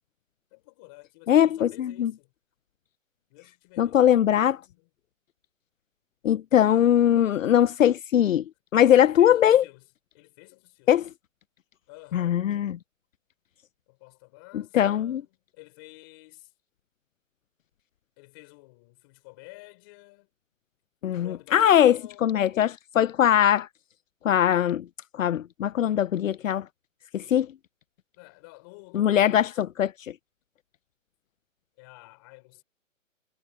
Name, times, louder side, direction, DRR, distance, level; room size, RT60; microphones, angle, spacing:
voice 1, 0.5-2.3 3.3-4.9 8.7-9.9 10.1-11.1 11.9-12.4 13.9-16.5 18.2-20.3 21.0-22.5 28.2-29.5 31.8-32.6, left 26 dB, 15° left, 5.4 m, -51 dB
voice 2, 1.3-2.1 3.8-4.6 6.2-8.4 8.7-9.6 10.9-11.0 12.1-12.8 14.7-15.2 21.0-22.0 22.2-23.7 24.2-24.8 25.2-26.6 27.1-27.5 28.9-29.9, left 10 dB, 80° left, 0.6 m, -21 dB
hypercardioid pair, 180°, 39 cm